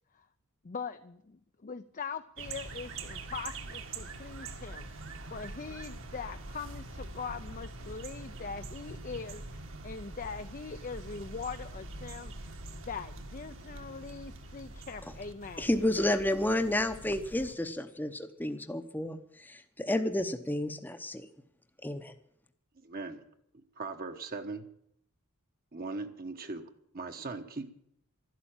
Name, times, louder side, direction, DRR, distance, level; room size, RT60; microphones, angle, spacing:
voice 1, 0.6-15.7, left 5 dB, 35° left, 9 dB, 0.5 m, -42 dB
sound 1, 2.4-17.6, right 2 dB, 60° right, 1.7 m, -44 dB
voice 2, 15.6-21.3 21.8-22.1, left 1 dB, 10° left, 7 dB, 0.8 m, -31 dB
voice 3, 22.8-23.2 23.8-24.7 25.7-27.7, right 3 dB, 40° right, 5 dB, 1.1 m, -39 dB
12.5 x 11.5 x 8.9 m, 0.71 s
head